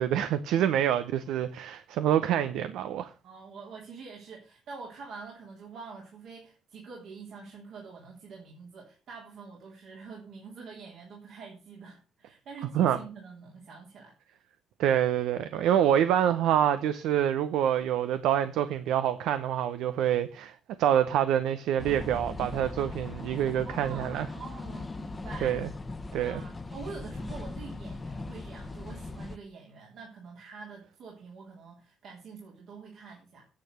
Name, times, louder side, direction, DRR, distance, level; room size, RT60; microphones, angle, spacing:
voice 1, 0.0-3.1 12.7-13.0 14.8-24.3 25.4-25.7 26.1-26.4, right 10 dB, 90° right, 0.8 m, -26 dB
voice 2, 3.2-14.1 23.6-25.6 26.2-33.5, right 5 dB, 75° right, 3.5 m, -46 dB
sound 1, 21.8-29.4, left 3 dB, 25° left, 1.0 m, -39 dB
9.6 x 8.2 x 6.8 m
cardioid pair, 90°, 0 cm